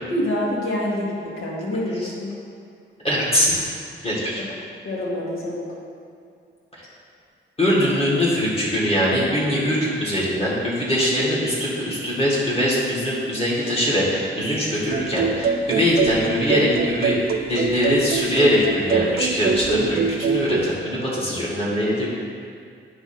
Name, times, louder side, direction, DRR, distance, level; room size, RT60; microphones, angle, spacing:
voice 1, 0.0-2.3 4.4-4.5 4.8-5.7, left 1 dB, 85° left, -5 dB, 1.8 m, -26 dB
voice 2, 3.0-3.5 4.0-4.4 7.6-17.2 17.5-22.1, equal, 30° left, -6 dB, 1.9 m, -22 dB
sound 1, 14.9-20.7, right 5 dB, 50° right, 0.4 m, -24 dB
9.1 x 3.3 x 6.0 m, 2.3 s
wide cardioid pair, 140°, 21 cm